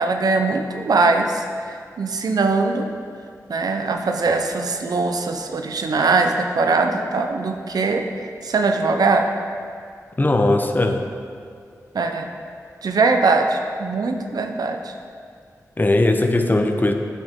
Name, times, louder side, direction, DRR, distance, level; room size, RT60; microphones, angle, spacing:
voice 1, 0.0-1.4 2.0-2.9 3.5-8.0 8.4-9.3 11.9-12.3 12.8-14.9, right 3 dB, 80° right, 5 dB, 0.7 m, -21 dB
voice 2, 10.2-11.0 15.8-16.9, left 2 dB, 30° left, 5 dB, 0.9 m, -18 dB
10.5 x 8.3 x 3.7 m, 2.3 s
cardioid pair, 50°, 6 cm